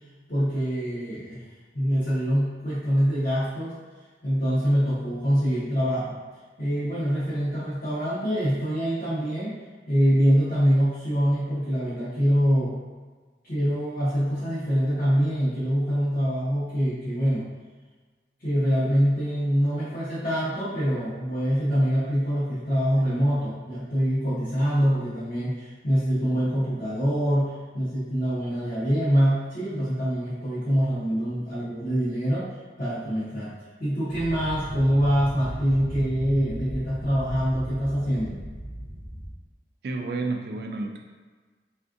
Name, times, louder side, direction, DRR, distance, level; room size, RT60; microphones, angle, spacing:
voice 1, 0.3-1.4 1.7-3.7 4.2-6.2 6.6-9.6 9.9-12.7 13.4-17.4 18.4-32.5 32.8-33.5 33.8-38.3, equal, 45° left, -12 dB, 0.8 m, -24 dB
sound 1, 34.1-39.3, equal, 15° right, 0.5 m, -36 dB
voice 2, 39.8-41.0, right 3 dB, 60° right, 4 dB, 0.3 m, -30 dB
3.5 x 2.4 x 2.5 m, 1.4 s
head